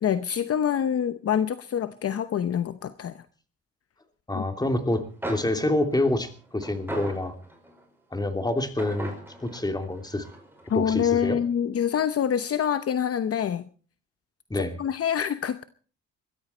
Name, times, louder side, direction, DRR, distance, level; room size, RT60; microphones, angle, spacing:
voice 1, 0.0-3.2 4.3-4.4 10.7-13.7 14.5-15.6, left 8 dB, 50° left, 12 dB, 0.9 m, -26 dB
voice 2, 4.3-7.3 8.1-9.1 9.4-10.3 10.7-11.4 14.5-14.7, left 1 dB, 15° left, 6 dB, 2.8 m, -27 dB
sound 1, 4.9-5.0 5.2-7.8 8.8-10.7, right 1 dB, 5° right, 5.5 m, -38 dB
20.5 x 14.0 x 4.4 m, 0.41 s
cardioid pair, 90°, 30 cm